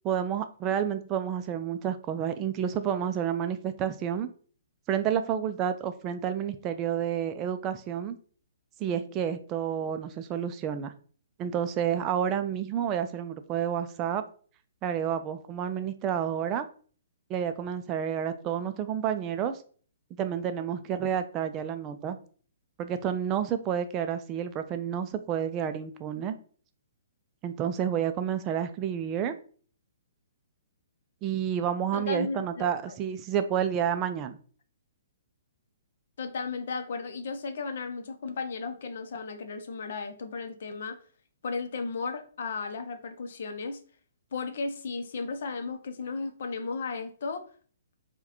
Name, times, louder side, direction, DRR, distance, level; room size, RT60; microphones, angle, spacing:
voice 1, 0.0-4.3 4.9-8.2 8.8-10.9 11.4-14.2 14.8-16.7 17.3-19.6 20.2-22.2 22.8-26.4 27.4-29.3 31.2-34.4, right 9 dB, 25° right, 9 dB, 0.3 m, -30 dB
voice 2, 31.9-33.0 36.2-41.0 41.4-43.8 44.3-47.4, left 4 dB, 60° left, 7 dB, 0.6 m, -35 dB
4.6 x 2.2 x 2.9 m, 0.43 s
hypercardioid pair, 135°, 0 cm